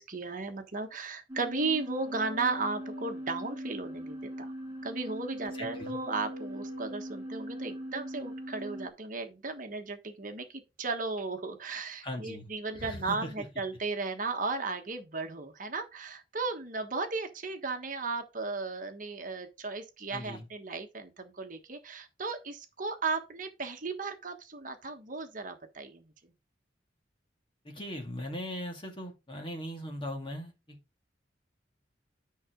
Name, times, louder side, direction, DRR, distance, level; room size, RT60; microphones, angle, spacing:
voice 1, 0.0-4.5 4.8-26.1, right 3 dB, 45° right, 1.3 m, -35 dB
sound 1, 1.3-8.9, equal, 15° right, 2.0 m, -40 dB
voice 2, 5.5-6.0 12.0-12.5 12.8-13.3 20.1-20.5 27.6-30.8, equal, 30° left, 2.1 m, -39 dB
10.0 x 5.7 x 3.8 m
head